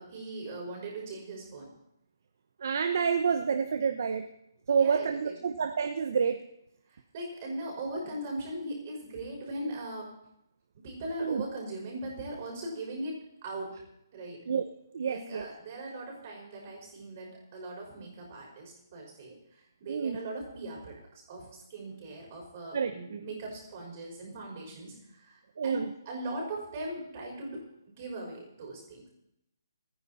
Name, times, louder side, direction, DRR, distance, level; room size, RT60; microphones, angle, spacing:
voice 1, 0.0-1.7 4.8-5.4 6.9-10.1 10.8-13.2 13.4-13.8 14.1-14.4 15.1-19.4 19.8-29.1, right 1 dB, 25° right, -2 dB, 5.4 m, -40 dB
voice 2, 2.6-4.3 4.7-6.5 11.2-11.4 14.5-14.6 14.9-15.4 19.9-20.2 22.7-23.2 25.6-25.9, right 6 dB, 45° right, 7 dB, 0.9 m, -28 dB
27.5 x 9.9 x 4.3 m, 0.80 s
hypercardioid pair, 170°, 2 cm